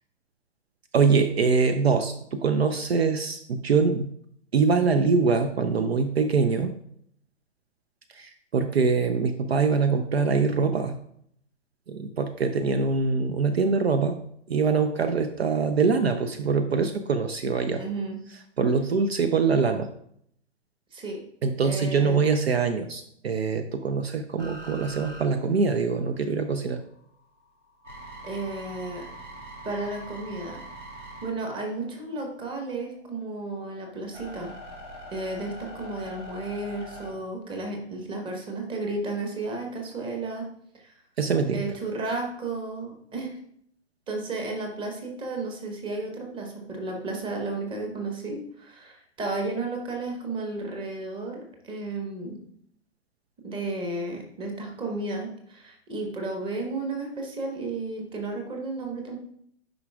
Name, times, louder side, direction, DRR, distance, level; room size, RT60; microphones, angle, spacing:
voice 1, 0.9-4.1 4.5-6.7 8.1-11.0 11.9-14.2 14.5-17.8 18.6-19.9 21.4-26.8 41.2-41.7, right 5 dB, 60° right, 9 dB, 0.6 m, -24 dB
voice 2, 17.8-18.2 20.9-21.2 21.6-22.2 28.2-29.1 29.6-30.6 31.2-34.5 35.1-40.5 40.8-40.9 41.5-43.3 44.1-52.4 53.4-59.2, right 2 dB, 15° right, 2 dB, 1.1 m, -33 dB
sound 1, 24.4-26.3 26.7-32.3 32.9-37.1, right 1 dB, 80° right, 2.0 m, -43 dB
9.3 x 5.1 x 2.3 m, 0.68 s
figure-of-eight pair, 115°, 35 cm